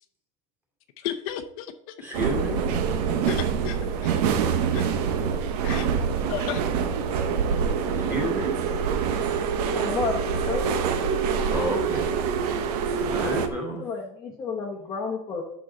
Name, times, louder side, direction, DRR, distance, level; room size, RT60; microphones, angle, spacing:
voice 1, 1.0-1.9 3.3-3.8 4.0-4.1 4.7-4.9 5.6-5.9 6.3-6.6 10.4-10.6, left 10 dB, 60° left, 6 dB, 0.7 m, -33 dB
voice 2, 2.0-2.6 7.9-8.5 11.5-12.1 13.0-13.8, equal, 10° right, -2 dB, 2.7 m, -31 dB
sound 1, 2.1-13.5, right 6 dB, 75° right, 1.2 m, -25 dB
voice 3, 9.7-10.8 13.8-15.4, left 4 dB, 20° left, -3 dB, 1.0 m, -31 dB
11.0 x 6.3 x 3.9 m, 0.74 s
cardioid pair, 175°, 20 cm